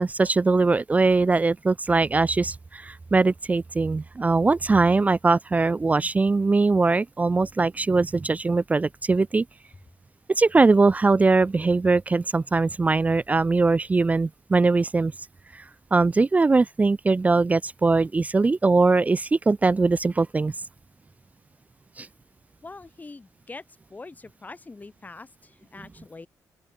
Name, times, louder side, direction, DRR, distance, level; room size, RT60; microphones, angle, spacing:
voice 1, 0.0-9.4 10.4-15.1 15.5-15.6 15.9-20.5 22.0-22.1, right 3 dB, 20° right, 0.4 m, -21 dB
voice 2, 22.6-23.6 23.9-26.3, left 3 dB, 25° left, 2.3 m, -43 dB
open air
cardioid pair, 90°, 7 cm